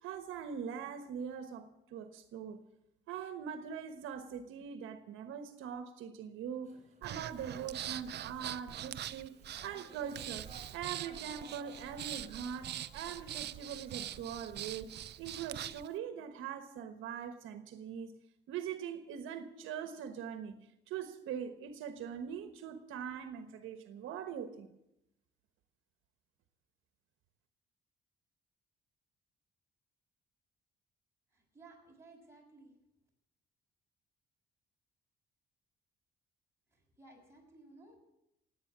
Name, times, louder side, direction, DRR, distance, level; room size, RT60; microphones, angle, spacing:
voice 1, 0.0-2.6 3.1-10.5 10.7-18.2 18.5-20.6 20.9-24.7, right 8 dB, 90° right, 8 dB, 1.2 m, -42 dB
sound 1, 6.6-14.5, right 2 dB, 35° right, 4.9 m, -60 dB
Breathing, 7.0-15.9, right 11 dB, 60° right, 0.6 m, -43 dB
voice 2, 31.3-32.8 36.7-38.0, right 2 dB, 15° right, -1 dB, 6.6 m, -58 dB
17.5 x 9.1 x 7.3 m, 0.86 s
cardioid pair, 90°, 20 cm